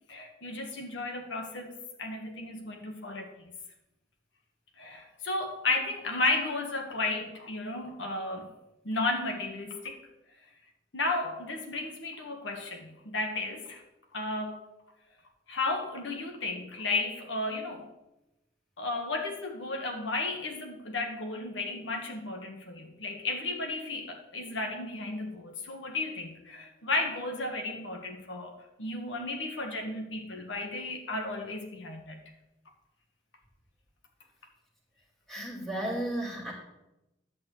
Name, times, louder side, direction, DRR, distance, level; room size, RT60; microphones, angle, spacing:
voice 1, 0.1-3.3 4.8-8.5 8.8-10.0 10.9-13.8 14.1-14.6 15.5-17.9 18.8-32.2, left 2 dB, 85° left, 3 dB, 1.5 m, -33 dB
voice 2, 35.3-36.5, right 1 dB, ahead, -4 dB, 2.4 m, -33 dB
10.5 x 4.3 x 7.7 m, 0.92 s
head